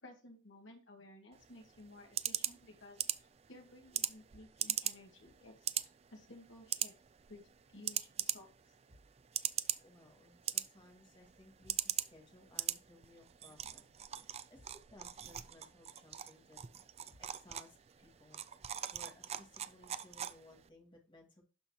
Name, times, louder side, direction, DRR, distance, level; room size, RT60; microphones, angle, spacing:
voice 1, 0.0-3.0 3.5-6.9 7.3-7.4 7.7-8.5, left 1 dB, 70° left, 1 dB, 2.2 m, -56 dB
sound 1, 1.3-20.7, right 10 dB, 35° right, 0.4 m, -41 dB
sound 2, 8.9-9.2 11.6-12.0 14.5-14.9 17.1-17.5, equal, 50° right, 3.5 m, -64 dB
voice 2, 9.8-16.6 17.2-21.4, left 1 dB, 25° left, 1 dB, 2.2 m, -61 dB
12.0 x 4.3 x 2.9 m, 0.32 s
head